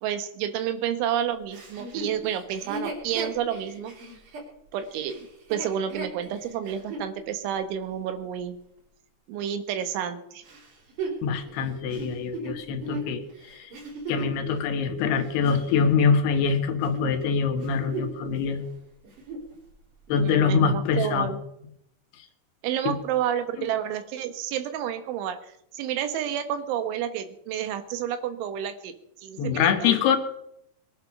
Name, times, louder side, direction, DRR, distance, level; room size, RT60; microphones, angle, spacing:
voice 1, 0.0-4.0 4.7-8.6 9.3-10.4 20.1-21.4 22.6-25.4 25.7-29.9, right 9 dB, 85° right, 9 dB, 3.7 m, -30 dB
Chuckle chortle, 1.5-7.1 7.7-7.8 10.5-14.4 15.0-16.5 16.8-17.1 17.5-18.3 18.6-18.7 19.0-19.5 20.2-20.3, right 2 dB, 45° right, 5.1 m, -37 dB
voice 2, 11.2-13.7 14.1-18.6 20.1-21.3 22.9-23.0 23.6-23.7 29.4-30.2, left 6 dB, 70° left, 6 dB, 3.1 m, -24 dB
21.5 x 11.0 x 6.0 m, 0.78 s
omnidirectional pair, 5.3 m